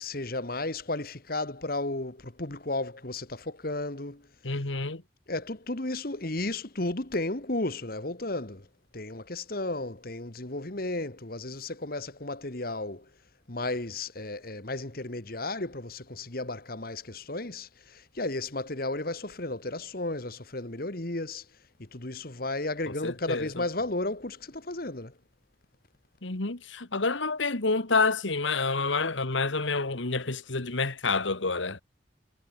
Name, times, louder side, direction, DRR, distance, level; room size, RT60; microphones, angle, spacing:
voice 1, 0.0-4.3 5.3-8.7 8.9-13.1 13.5-21.5 21.8-25.1, left 2 dB, 50° left, 1.8 m, -34 dB
voice 2, 4.4-5.0 22.9-23.6 26.2-31.8, left 3 dB, 85° left, 1.9 m, -28 dB
head